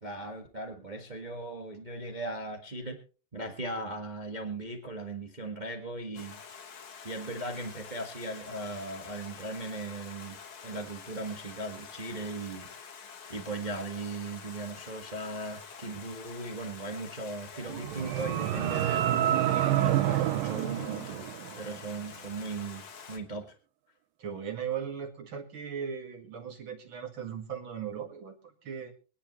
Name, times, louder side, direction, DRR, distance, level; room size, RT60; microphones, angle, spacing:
voice 1, 0.0-3.0 3.3-10.4 10.6-12.7 13.3-22.8 23.1-23.5, right 2 dB, 75° right, 3 dB, 0.4 m, -38 dB
Stream, 6.1-23.2, left 6 dB, 50° left, 1.9 m, -47 dB
sound 1, 17.6-21.8, right 13 dB, 90° right, 2.6 m, -28 dB
voice 2, 24.2-28.9, right 7 dB, 45° right, 4 dB, 2.1 m, -38 dB
24.5 x 10.0 x 3.1 m, 0.36 s
omnidirectional pair, 3.9 m